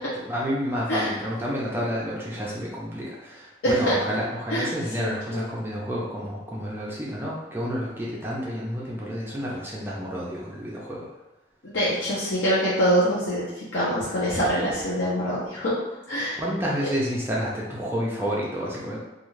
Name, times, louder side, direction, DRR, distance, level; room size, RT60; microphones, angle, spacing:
voice 1, 0.2-11.1 16.4-19.0, equal, 10° right, -5 dB, 0.5 m, -30 dB
voice 2, 5.0-5.4 11.6-13.4 13.7-15.8 16.1-16.4, equal, 75° left, -9 dB, 0.6 m, -24 dB
2.4 x 2.3 x 3.1 m, 1.1 s
head